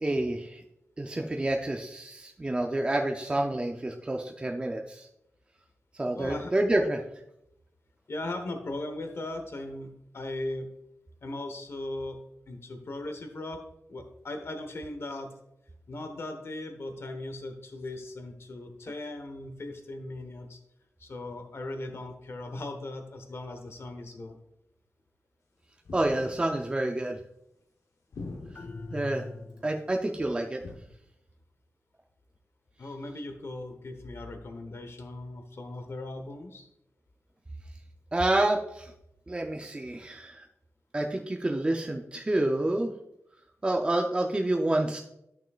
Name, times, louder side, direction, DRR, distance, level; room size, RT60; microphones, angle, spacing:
voice 1, 0.0-0.6 1.0-5.1 5.9-7.0 25.9-27.2 28.9-29.3 29.6-30.6 38.1-38.9 39.3-40.5 40.9-42.9 43.6-45.0, right 1 dB, 20° right, 2 dB, 0.5 m, -28 dB
voice 2, 6.1-6.5 8.1-10.7 11.2-12.2 12.5-13.6 13.9-15.3 15.9-20.6 21.0-24.4 32.8-36.7, left 2 dB, 55° left, 6 dB, 1.1 m, -38 dB
sound 1, 25.8-26.6 28.1-28.9 30.6-30.7, left 3 dB, 90° left, 1.1 m, -42 dB
sound 2, 28.6-30.0, left 3 dB, 35° left, 0.4 m, -41 dB
11.0 x 6.1 x 2.4 m, 0.82 s
wide cardioid pair, 130°, 5 cm